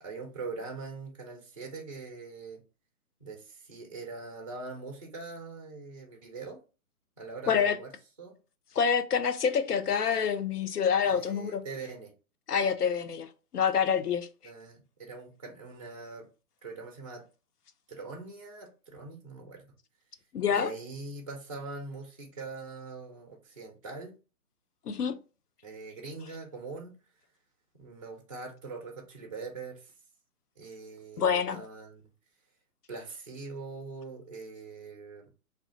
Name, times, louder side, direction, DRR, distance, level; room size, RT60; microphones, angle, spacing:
voice 1, 0.0-2.6 3.2-6.6 7.2-7.9 8.2-8.4 11.0-12.1 14.4-16.3 16.6-17.3 17.9-19.7 20.5-24.2 25.6-27.0 27.7-29.9 30.6-32.0 32.9-35.3, right 3 dB, 25° right, 0.3 m, -42 dB
voice 2, 7.5-7.8 8.8-11.6 12.5-14.3 20.3-20.7 24.9-25.2 31.2-31.6, left 7 dB, 85° left, 0.6 m, -27 dB
2.4 x 2.3 x 3.6 m
figure-of-eight pair, 135°, 45 cm